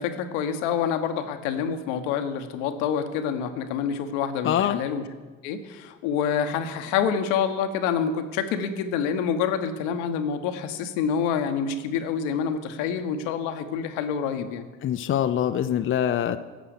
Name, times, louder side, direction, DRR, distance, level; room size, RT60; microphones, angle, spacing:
voice 1, 0.0-5.0 5.4-14.7, left 7 dB, 70° left, 8 dB, 1.1 m, -27 dB
voice 2, 4.4-4.8 14.8-16.4, left 10 dB, 35° left, 10 dB, 0.6 m, -24 dB
11.5 x 7.6 x 6.6 m, 1.3 s
hypercardioid pair, 65°, 37 cm